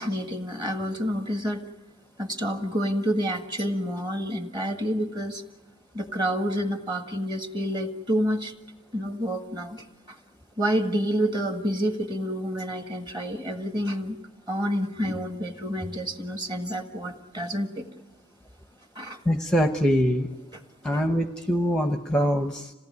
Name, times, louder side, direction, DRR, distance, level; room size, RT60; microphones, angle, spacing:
voice 1, 0.0-1.6 2.2-5.4 5.9-8.5 8.9-10.2 10.6-14.2 14.5-17.9 19.0-19.2, equal, 20° right, 5 dB, 1.7 m, -28 dB
voice 2, 19.3-20.3 20.8-22.7, equal, 5° left, 5 dB, 0.8 m, -23 dB
27.0 x 18.0 x 9.5 m, 1.1 s
head